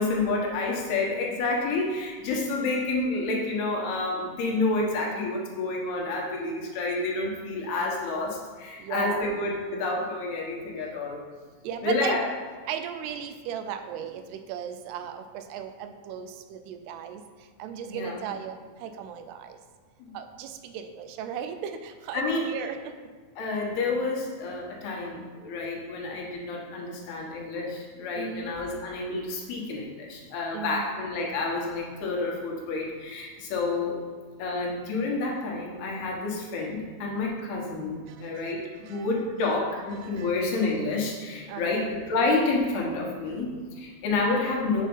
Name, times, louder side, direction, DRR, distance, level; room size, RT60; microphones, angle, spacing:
voice 1, 0.0-11.2 11.8-12.3 17.9-18.2 20.0-20.1 22.1-22.5 23.4-34.0 34.4-38.6 38.9-44.9, left 3 dB, 70° left, -2 dB, 3.3 m, -29 dB
voice 2, 8.8-9.3 11.6-12.2 12.7-17.2 17.6-19.5 20.1-22.9 28.1-28.6 30.5-31.0 38.1-38.2 38.9-39.1 40.0-40.3 41.5-41.9, right 8 dB, 80° right, 8 dB, 2.7 m, -36 dB
8.7 x 6.5 x 5.5 m, 1.5 s
omnidirectional pair, 4.7 m